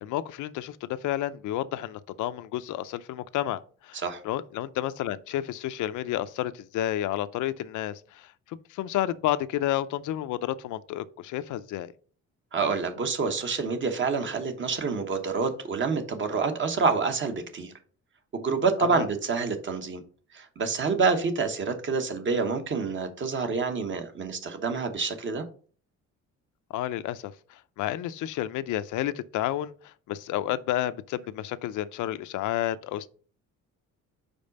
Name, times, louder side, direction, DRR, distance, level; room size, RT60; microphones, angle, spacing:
voice 1, 0.0-11.9 18.8-19.1 26.7-33.1, left 13 dB, 80° left, 0.5 m, -31 dB
voice 2, 12.5-17.7 18.3-20.0 20.3-25.4, right 4 dB, 40° right, 1.1 m, -27 dB
5.3 x 4.8 x 5.3 m
cardioid pair, 145°, 30 cm